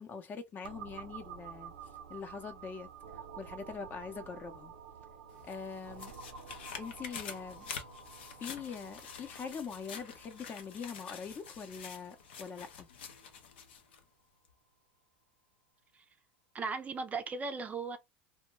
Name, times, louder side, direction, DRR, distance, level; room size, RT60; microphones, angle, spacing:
voice 1, 0.0-1.7 2.1-2.9 3.4-4.7 5.4-6.1 6.8-7.7 8.4-12.9, left 5 dB, 35° left, 0.6 m, -43 dB
sound 1, 0.6-14.2, right 6 dB, 85° right, 0.6 m, -51 dB
sound 2, 5.3-14.0 14.4-14.5, left 7 dB, 85° left, 0.6 m, -48 dB
voice 2, 16.5-18.0, right 4 dB, 25° right, 0.4 m, -37 dB
2.2 x 2.2 x 3.0 m
hypercardioid pair, 90°, 6 cm